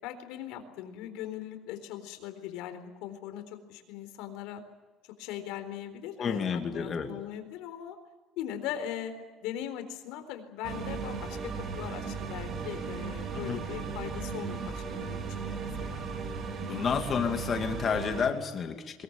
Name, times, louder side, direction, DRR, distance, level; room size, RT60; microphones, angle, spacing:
voice 1, 0.0-4.6 5.2-8.0 8.4-9.2 9.4-16.1, left 10 dB, 75° left, 8 dB, 4.0 m, -40 dB
voice 2, 6.2-7.1 13.5-13.6 16.6-19.0, left 6 dB, 25° left, 5 dB, 2.4 m, -30 dB
sound 1, 10.6-18.3, right 5 dB, 30° right, 3.1 m, -36 dB
22.5 x 22.0 x 8.9 m, 1.3 s
cardioid pair, 180°, 0 cm